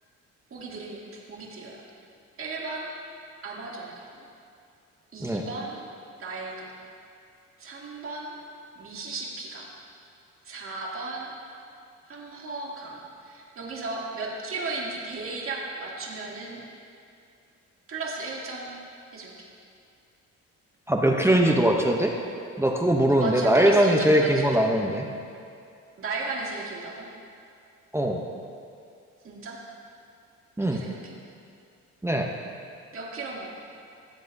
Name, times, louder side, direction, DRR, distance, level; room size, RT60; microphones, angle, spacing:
voice 1, 0.5-1.8 2.4-2.9 3.4-4.3 5.1-6.8 7.6-8.4 8.7-9.7 10.4-11.3 12.1-16.6 17.9-18.8 19.1-19.5 23.1-24.4 26.0-27.1 29.2-29.6 30.6-31.1 32.9-33.5, right 3 dB, 45° right, -3 dB, 2.0 m, -35 dB
voice 2, 20.9-22.1 22.6-25.0 27.9-28.2 30.6-30.8 32.0-32.3, right 1 dB, 10° right, 1 dB, 0.7 m, -21 dB
16.5 x 7.4 x 2.7 m, 2.5 s
cardioid pair, 90°, 30 cm